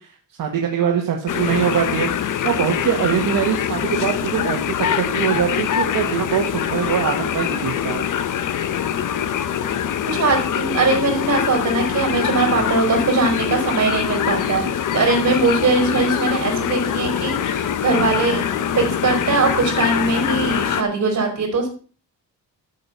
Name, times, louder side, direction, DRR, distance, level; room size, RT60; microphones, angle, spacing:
voice 1, 0.4-2.1 2.4-8.1, right 8 dB, 70° right, 1 dB, 1.6 m, -22 dB
sound 1, 1.3-20.8, left 9 dB, 65° left, 0.9 m, -23 dB
voice 2, 10.1-14.6 14.9-18.4 18.8-21.7, right 3 dB, 50° right, 2 dB, 4.4 m, -20 dB
12.0 x 6.7 x 5.5 m, 0.40 s
wide cardioid pair, 180°, 34 cm